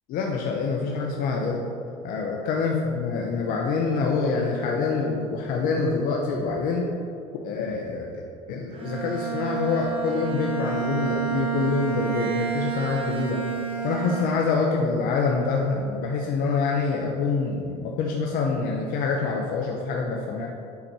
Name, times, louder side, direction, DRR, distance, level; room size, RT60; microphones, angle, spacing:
voice 1, 0.1-1.6 2.0-6.8 7.4-13.4 13.8-20.5, left 4 dB, 65° left, 0 dB, 0.9 m, -26 dB
Bowed string instrument, 8.7-14.8, right 6 dB, 35° right, 1.2 m, -30 dB
8.4 x 4.2 x 6.2 m, 2.5 s
supercardioid pair, 90°, 16 cm